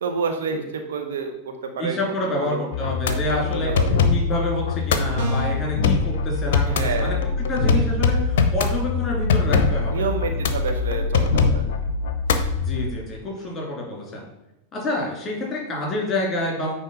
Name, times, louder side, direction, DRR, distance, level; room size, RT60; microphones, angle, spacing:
voice 1, 0.0-2.6 3.1-4.0 6.7-7.2 9.9-11.7, right 5 dB, 60° right, 4 dB, 0.9 m, -29 dB
voice 2, 1.8-3.7 4.1-7.2 7.5-10.4 12.6-14.2 14.7-16.7, left 1 dB, 20° left, -2 dB, 3.0 m, -28 dB
sound 1, 2.7-12.9, left 4 dB, 55° left, 0.7 m, -22 dB
sound 2, 5.2-5.7, right 5 dB, 45° right, 1.6 m, -31 dB
9.0 x 3.4 x 5.4 m, 0.88 s
figure-of-eight pair, 90°, 0 cm